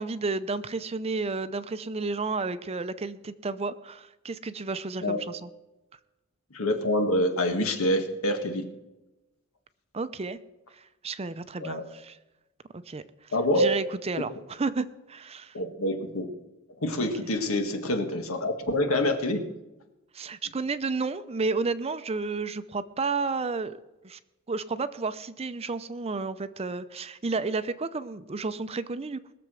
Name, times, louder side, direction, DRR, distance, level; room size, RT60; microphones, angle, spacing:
voice 1, 0.0-5.5 9.9-10.4 10.8-12.2 12.7-15.5 17.0-17.1 20.1-23.8 24.0-24.2 24.5-29.2, right 4 dB, 30° right, 13 dB, 0.5 m, -32 dB
voice 2, 6.5-8.7 11.6-11.8 13.3-13.8 14.2-14.3 15.5-16.3 16.8-19.5, left 1 dB, 90° left, 5 dB, 1.7 m, -26 dB
20.5 x 6.9 x 6.2 m, 1.0 s
head